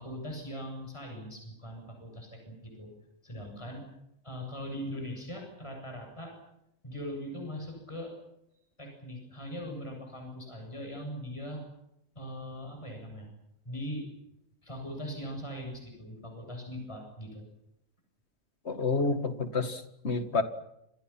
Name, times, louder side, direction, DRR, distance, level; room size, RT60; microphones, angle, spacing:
voice 1, 0.0-2.9 3.2-3.9 4.2-6.3 6.8-8.1 8.8-11.6 12.1-13.3 13.6-14.0 14.6-17.4, equal, 20° left, 2 dB, 7.9 m, -40 dB
voice 2, 18.7-20.4, left 3 dB, 50° left, 9 dB, 2.2 m, -29 dB
29.5 x 27.0 x 5.9 m, 0.82 s
omnidirectional pair, 1.4 m